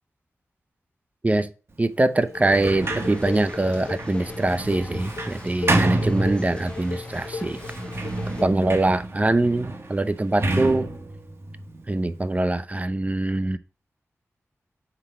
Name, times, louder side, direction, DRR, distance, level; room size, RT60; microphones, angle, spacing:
voice 1, 1.8-7.6 8.4-10.9 11.9-13.6, right 2 dB, 30° right, 0.5 m, -23 dB
Dishes pots and pans, 2.2-8.8, left 4 dB, 80° left, 1.4 m, -37 dB
Sliding door, 2.4-6.9 7.5-12.4, right 2 dB, 55° right, 1.1 m, -29 dB
traffic light slow cobblestone intersection Oaxaca Mexico, 2.8-8.4, left 2 dB, 20° left, 0.9 m, -41 dB
5.9 x 4.6 x 5.5 m
wide cardioid pair, 65°, 5 cm